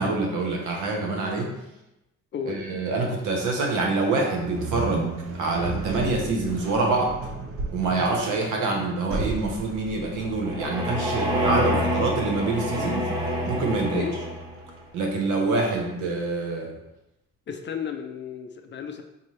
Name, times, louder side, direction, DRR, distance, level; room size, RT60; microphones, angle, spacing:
voice 1, 0.0-1.5 2.5-5.1 5.4-7.1 7.7-13.1 13.5-14.1 14.9-16.7, right 3 dB, 80° right, 0 dB, 0.9 m, -26 dB
sound 1, 4.4-15.5, right 4 dB, 50° right, 0.6 m, -35 dB
sound 2, 10.0-14.7, equal, 15° right, 1.1 m, -27 dB
voice 2, 17.5-19.0, left 7 dB, 40° left, 6 dB, 0.4 m, -33 dB
4.0 x 2.6 x 3.1 m, 0.92 s
cardioid pair, 90°, 30 cm